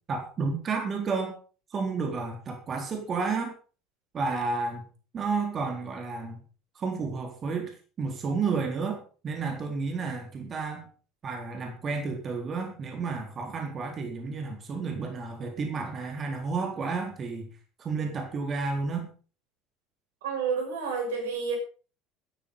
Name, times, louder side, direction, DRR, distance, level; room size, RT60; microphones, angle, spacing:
voice 1, 0.1-1.4 1.7-3.5 4.1-4.9 5.1-6.4 6.8-10.9 11.2-17.5 17.8-19.1, right 4 dB, 40° right, 3 dB, 3.9 m, -31 dB
voice 2, 20.2-21.6, right 5 dB, 80° right, 3 dB, 6.1 m, -30 dB
13.5 x 11.5 x 5.5 m, 0.38 s
hypercardioid pair, 70°, 0 cm